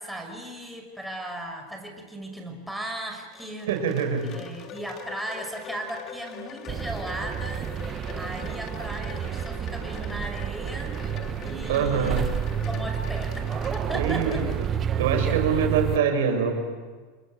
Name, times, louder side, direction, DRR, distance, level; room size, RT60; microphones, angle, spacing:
voice 1, 0.0-3.7 4.2-11.0 11.4-12.2 12.7-14.4, right 1 dB, ahead, 2 dB, 5.8 m, -37 dB
Wind chime, 2.9-15.1, left 8 dB, 45° left, 3.1 m, -43 dB
voice 2, 3.7-4.3 11.7-12.3 13.9-14.7 14.9-16.5, right 6 dB, 80° right, 4 dB, 5.9 m, -24 dB
sound 1, 6.7-16.0, right 9 dB, 35° right, 0.9 m, -30 dB
27.5 x 22.0 x 9.5 m, 1.4 s
hypercardioid pair, 105°, 0 cm